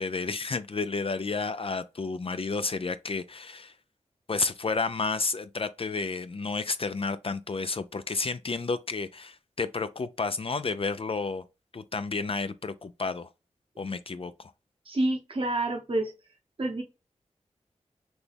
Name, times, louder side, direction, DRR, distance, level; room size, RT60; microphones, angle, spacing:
voice 1, 0.0-3.7 4.3-11.4 11.7-13.3 13.8-14.5, left 4 dB, 50° left, 0.5 m, -31 dB
voice 2, 14.8-16.1 16.6-16.8, right 2 dB, 50° right, 1.0 m, -28 dB
6.1 x 2.3 x 3.4 m
wide cardioid pair, 55°, 12 cm